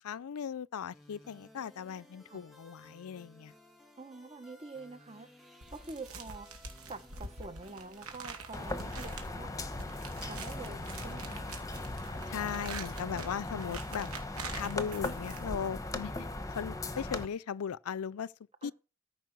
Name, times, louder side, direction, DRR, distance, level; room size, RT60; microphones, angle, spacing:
voice 1, 0.0-3.5 12.3-14.1 14.5-18.3 18.6-18.7, left 7 dB, 80° left, 0.4 m, -38 dB
sound 1, 0.9-11.1, left 1 dB, ahead, 2.3 m, -58 dB
voice 2, 4.0-5.3 5.7-6.5 6.9-9.6 10.2-11.4 18.6-18.7, right 3 dB, 30° right, 1.2 m, -46 dB
sound 2, 5.6-15.8, right 3 dB, 75° right, 2.3 m, -46 dB
sound 3, 8.5-17.3, left 2 dB, 15° left, 1.0 m, -39 dB
13.5 x 5.6 x 6.1 m
head